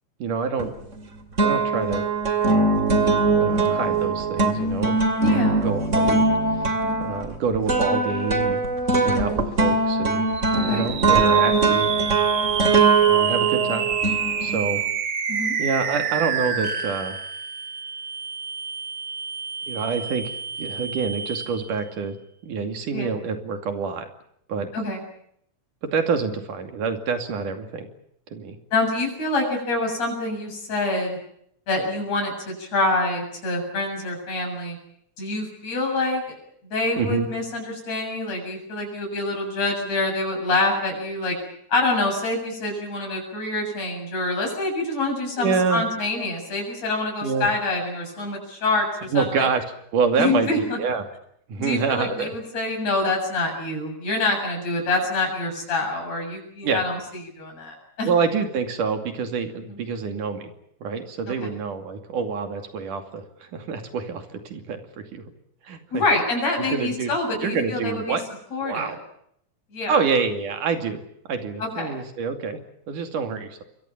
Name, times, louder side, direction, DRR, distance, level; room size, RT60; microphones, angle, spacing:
voice 1, 0.2-0.7 1.4-2.1 3.3-4.9 5.6-6.2 6.5-6.7 7.0-8.6 9.0-10.3 10.6-11.9 13.1-13.9 14.4-14.8 15.6-17.2 19.7-22.2 22.4-24.1 24.5-24.7 25.8-27.9 28.3-28.6 37.0-37.3 45.4-45.8 47.2-47.5 49.1-49.6 49.9-51.1 51.5-52.4 56.6-56.8 58.1-60.5 60.8-65.2 65.6-66.0 66.7-67.1 67.4-68.2 68.6-69.0 69.9-71.0 71.3-72.6 72.9-73.6, right 5 dB, 80° right, 6 dB, 4.1 m, -26 dB
sound 1, 0.6-1.1 1.4-14.8, right 3 dB, 25° right, 2.4 m, -21 dB
voice 2, 5.2-5.7 10.5-10.9 15.3-15.5 22.9-23.1 24.7-25.0 28.7-31.2 31.7-34.8 35.2-36.4 36.6-41.4 41.7-49.5 50.2-50.8 51.6-57.0 57.4-58.1 59.7-59.8 61.4-61.5 65.9-68.2 68.5-69.0 69.7-70.0 71.6-71.9, left 2 dB, 55° left, 2 dB, 8.7 m, -26 dB
sound 2, 10.3-21.8, right 6 dB, 45° right, 1.4 m, -29 dB
27.5 x 23.5 x 7.4 m, 0.73 s
omnidirectional pair, 3.7 m